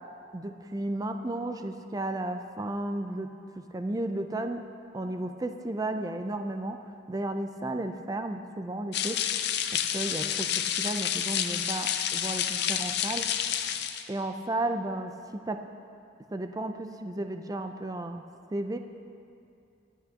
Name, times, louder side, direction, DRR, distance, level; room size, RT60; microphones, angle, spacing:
voice 1, 0.3-3.3 3.7-4.7 4.9-9.2 9.9-13.3 14.1-15.7 16.3-18.2 18.5-18.8, right 1 dB, 20° right, 7 dB, 0.5 m, -33 dB
sound 1, 8.9-14.1, left 9 dB, 60° left, 0.5 m, -29 dB
23.5 x 8.3 x 2.9 m, 2.6 s
head